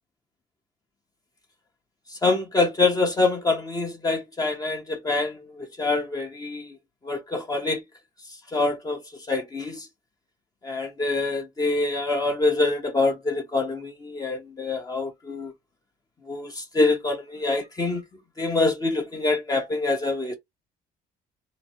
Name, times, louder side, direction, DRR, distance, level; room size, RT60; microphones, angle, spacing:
voice 1, 2.2-5.4 5.8-6.6 7.1-7.8 8.5-9.0 9.3-9.8 10.6-15.5 16.3-18.0 18.4-20.3, left 3 dB, 20° left, 1.0 m, -25 dB
3.9 x 2.1 x 4.5 m
cardioid pair, 110°, 17 cm